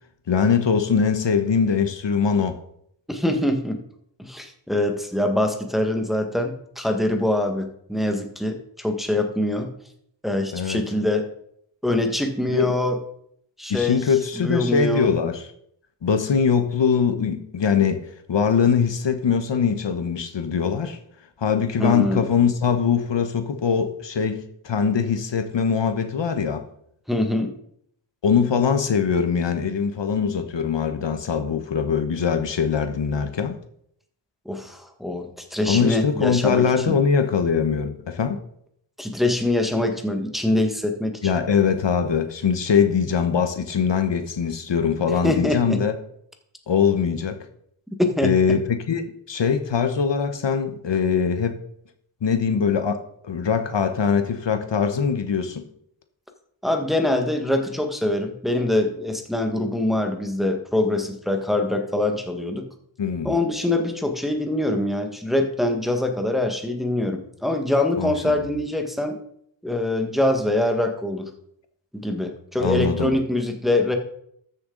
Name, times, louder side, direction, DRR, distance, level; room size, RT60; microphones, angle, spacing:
voice 1, 0.3-2.6 10.5-10.8 12.5-12.7 13.7-15.5 16.0-21.0 21.4-26.6 28.2-33.6 35.7-38.4 41.2-45.9 46.7-47.4 48.2-51.6 52.2-55.6 63.0-63.3 68.0-68.4 72.6-73.1, left 6 dB, 65° left, 1.1 m, -22 dB
voice 2, 3.1-3.8 4.2-9.7 10.2-11.3 11.8-13.0 13.6-14.0 14.4-15.1 21.8-22.3 27.1-27.5 34.4-37.0 39.0-41.3 45.2-45.8 48.0-48.3 56.6-62.6 63.2-69.2 69.6-71.3 71.9-74.0, left 1 dB, ahead, 1.5 m, -24 dB
13.5 x 7.0 x 3.9 m
wide cardioid pair, 80°, 47 cm